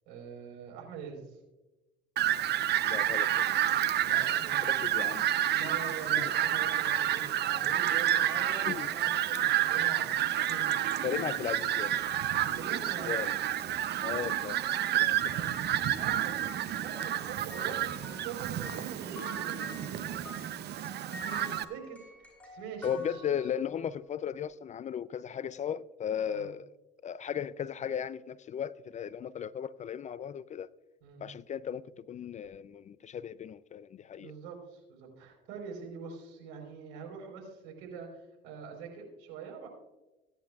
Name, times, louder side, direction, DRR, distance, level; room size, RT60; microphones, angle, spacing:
voice 1, 0.1-1.4 4.0-4.8 5.5-10.1 10.5-10.7 12.5-13.3 15.9-23.5 26.2-26.5 31.0-31.2 34.2-39.7, right 6 dB, 80° right, 4.2 m, -44 dB
Fowl, 2.2-21.6, right 12 dB, 50° right, 0.6 m, -30 dB
voice 2, 2.8-3.5 4.7-5.3 6.2-6.3 8.6-8.9 11.0-11.9 13.0-13.3 14.0-14.6 15.0-15.6 22.8-26.7 27.0-30.7 31.2-34.3, left 8 dB, 35° left, 0.4 m, -36 dB
sound 1, 5.6-16.0 16.4-23.7, left 1 dB, 5° left, 4.4 m, -48 dB
17.0 x 10.5 x 2.3 m
supercardioid pair, 80°, 21 cm